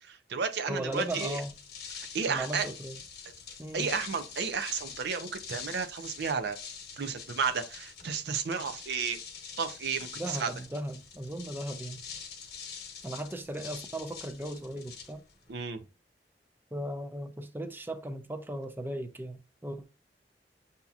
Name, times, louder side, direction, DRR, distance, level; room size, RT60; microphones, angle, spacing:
voice 1, 0.0-1.4 1.9-2.7 3.7-6.6 6.9-9.2 9.6-10.5 15.5-15.8, right 5 dB, 65° right, 0.6 m, -32 dB
voice 2, 0.7-1.5 2.3-3.0 3.6-3.9 10.2-12.0 13.0-15.2 16.7-19.9, right 1 dB, 10° right, 0.5 m, -37 dB
sound 1, 0.8-15.6, left 6 dB, 60° left, 1.1 m, -45 dB
6.9 x 2.8 x 2.4 m
head